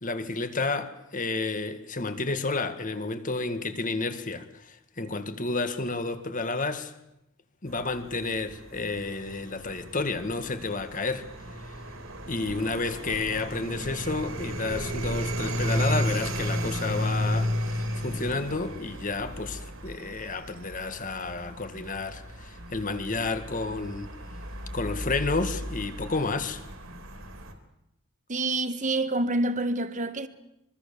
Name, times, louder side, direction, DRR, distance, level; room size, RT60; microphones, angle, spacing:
voice 1, 0.0-6.9 7.6-11.3 12.3-24.1 24.7-26.6, left 3 dB, 35° left, 1.9 m, -31 dB
sound 1, 7.7-27.5, equal, 70° right, 3.5 m, -34 dB
voice 2, 28.3-30.3, right 2 dB, 35° right, 1.5 m, -27 dB
25.5 x 23.0 x 7.1 m
head